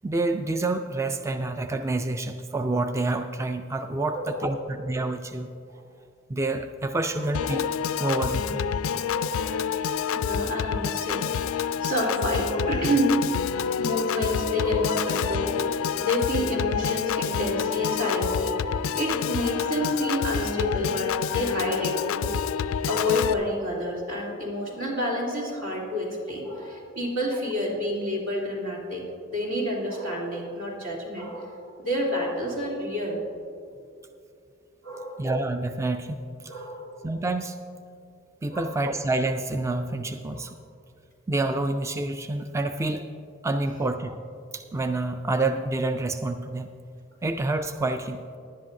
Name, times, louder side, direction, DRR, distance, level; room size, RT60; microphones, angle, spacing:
voice 1, 0.0-5.5 6.3-7.7 8.0-8.7 35.2-36.5 37.0-37.6 38.4-40.5 41.3-43.1 43.4-44.2 44.5-46.7 47.2-48.2, right 2 dB, 15° right, 8 dB, 0.3 m, -28 dB
voice 2, 4.1-4.6 5.7-5.9 7.1-7.3 8.9-9.6 10.1-13.2 13.8-15.6 16.0-22.2 22.9-29.0 29.3-33.2 34.8-35.2 36.5-37.1 38.5-38.8 40.3-40.4, left 1 dB, 80° right, -4 dB, 3.0 m, -29 dB
Piano / Organ, 7.3-23.3, left 7 dB, 80° left, 0.3 m, -28 dB
18.0 x 11.0 x 2.6 m, 2.4 s
head